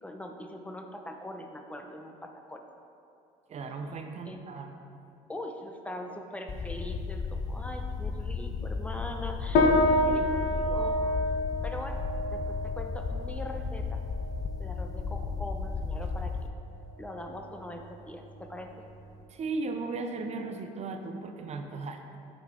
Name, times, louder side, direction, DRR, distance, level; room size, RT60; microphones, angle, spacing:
voice 1, 0.0-2.6 4.2-4.5 5.3-9.7 10.1-11.0 11.6-12.0 12.3-14.0 14.6-16.4 17.0-18.9, left 1 dB, 10° left, 4 dB, 0.8 m, -41 dB
voice 2, 3.5-4.8 19.3-22.2, right 3 dB, 40° right, 6 dB, 0.7 m, -36 dB
sound 1, 6.5-16.5, left 4 dB, 25° left, 0.4 m, -34 dB
sound 2, 9.5-19.2, left 1 dB, 65° left, 1.0 m, -30 dB
10.5 x 3.9 x 3.7 m, 2.6 s
hypercardioid pair, 70°, 17 cm